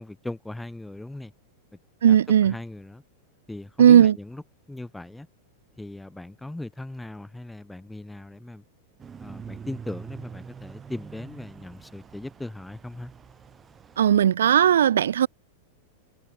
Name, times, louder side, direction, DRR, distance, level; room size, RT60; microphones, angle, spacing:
voice 1, 0.0-1.3 2.1-2.2 2.4-3.0 3.5-4.4 4.7-5.3 5.8-8.6 9.2-13.1, left 2 dB, 5° left, 1.4 m, -38 dB
voice 2, 2.0-2.5 3.8-4.1 14.0-15.3, right 9 dB, 85° right, 0.5 m, -17 dB
sound 1, 9.0-14.3, right 6 dB, 20° right, 6.1 m, -44 dB
hypercardioid pair, 120°, 0 cm